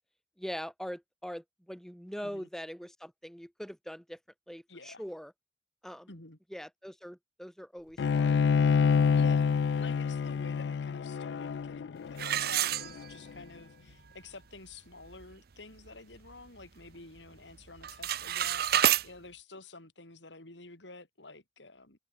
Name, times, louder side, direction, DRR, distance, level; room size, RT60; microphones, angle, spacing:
voice 1, 0.4-4.2 4.5-5.3 5.8-6.1 6.5-8.4, equal, 5° left, 5.4 m, -42 dB
voice 2, 4.7-5.0 6.1-6.4 9.2-22.0, left 3 dB, 85° left, 4.6 m, -50 dB
Bowed string instrument, 8.0-13.3, left 6 dB, 70° left, 0.3 m, -27 dB
sound 1, 12.2-13.4 13.9-14.0 14.6-14.7 15.0-15.3 15.8-16.9 17.2-17.5 17.8-19.1, right 11 dB, 60° right, 0.7 m, -29 dB
open air
head